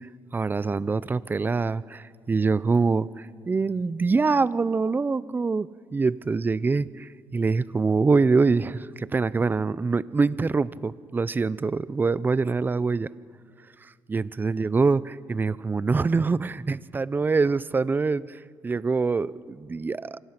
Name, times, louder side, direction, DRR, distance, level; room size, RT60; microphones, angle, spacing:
voice 1, 0.3-13.1 14.1-20.2, right 4 dB, 25° right, 18 dB, 0.6 m, -24 dB
28.5 x 25.5 x 6.0 m, 2.1 s
cardioid pair, 100°, 8 cm